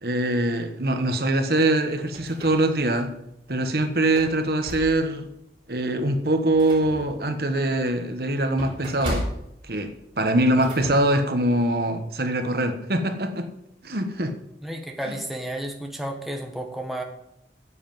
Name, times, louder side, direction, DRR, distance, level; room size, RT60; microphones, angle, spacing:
voice 1, 0.0-3.1 3.5-5.3 5.7-9.3 9.6-13.5 13.8-14.3 15.1-15.2, right 1 dB, 60° right, 6 dB, 1.4 m, -23 dB
sound 1, 1.8-3.0 3.5-3.6 4.0-5.3 5.7-5.9 6.2-10.9, equal, 25° right, 4.6 m, -36 dB
voice 2, 14.6-17.0, right 1 dB, ahead, 1 dB, 1.5 m, -32 dB
9.7 x 7.7 x 9.3 m, 0.79 s
head